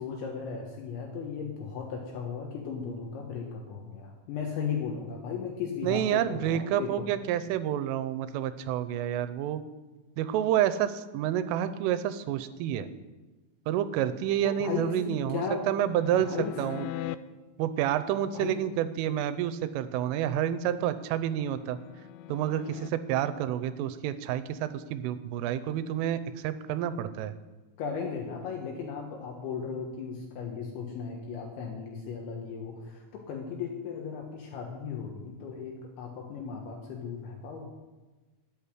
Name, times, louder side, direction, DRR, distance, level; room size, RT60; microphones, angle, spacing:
voice 1, 0.0-7.1 14.4-15.6 16.2-16.6 18.3-18.6 27.8-37.7, left 6 dB, 70° left, 0 dB, 3.5 m, -36 dB
voice 2, 5.8-9.6 10.2-12.9 13.7-16.9 17.6-21.8 22.3-27.3, right 11 dB, 90° right, 13 dB, 3.2 m, -29 dB
sound 1, 14.9-17.2 20.5-22.9, left 14 dB, 90° left, 2.5 m, -42 dB
12.5 x 8.4 x 9.9 m, 1.2 s
omnidirectional pair, 5.7 m